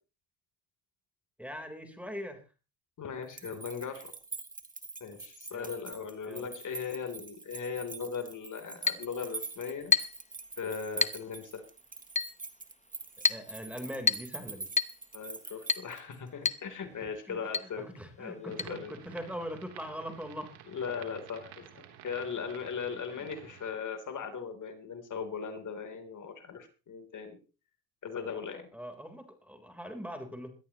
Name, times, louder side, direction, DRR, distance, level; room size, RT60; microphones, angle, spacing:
voice 1, 1.4-2.4 3.4-3.6 5.5-5.7 6.2-6.5 13.3-14.7 17.3-20.5 23.1-23.3 28.7-30.5, equal, 5° right, 5 dB, 3.8 m, -42 dB
voice 2, 3.0-4.1 5.0-9.9 10.6-11.6 15.1-17.9 18.2-19.0 20.7-27.4 28.0-28.7, left 6 dB, 45° left, 6 dB, 3.5 m, -38 dB
sound 1, 3.2-16.3, right 3 dB, 20° right, 2.1 m, -45 dB
Chink clink, 8.9-9.1 9.9-10.2 11.0-11.2 12.2-12.4 13.2-13.5 14.1-14.3 14.8-15.0 15.7-15.9 16.4-16.7 16.9-17.0 17.5-17.7 18.6-18.7, left 4 dB, 15° left, 1.0 m, -28 dB
sound 2, 18.5-23.7, right 10 dB, 90° right, 3.4 m, -52 dB
21.5 x 13.5 x 3.0 m, 0.33 s
cardioid pair, 95°, 41 cm